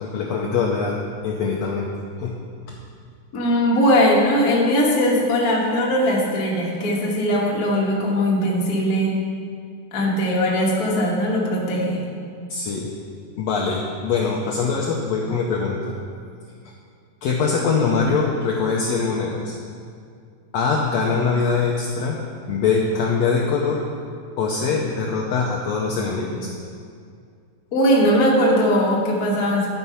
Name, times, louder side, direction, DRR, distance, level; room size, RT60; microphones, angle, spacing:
voice 1, 0.0-1.9 2.2-2.4 2.7-2.8 12.5-12.9 13.4-16.0 17.2-19.5 20.5-23.8 24.4-26.5, left 5 dB, 80° left, -2 dB, 1.6 m, -23 dB
voice 2, 3.3-9.2 9.9-12.1 27.7-29.7, equal, 50° left, -4 dB, 1.1 m, -20 dB
11.0 x 4.6 x 5.6 m, 2.3 s
omnidirectional pair, 3.7 m